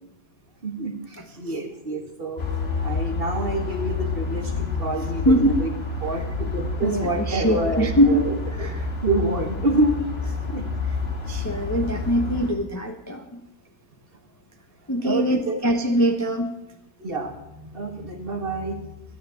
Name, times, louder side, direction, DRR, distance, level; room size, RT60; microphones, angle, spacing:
voice 1, 0.6-2.4 2.8-5.7 6.0-8.7 9.0-10.0 10.5-10.7 15.0-15.6 17.0-18.9, right 2 dB, 35° right, 4 dB, 1.8 m, -27 dB
sound 1, 2.4-12.5, left 4 dB, 35° left, 2.0 m, -29 dB
voice 2, 5.2-5.6 6.8-8.2 8.6-8.7 11.3-13.2 14.9-16.5, equal, 15° left, 3 dB, 0.8 m, -22 dB
13.0 x 10.0 x 7.8 m, 0.90 s
omnidirectional pair, 1.9 m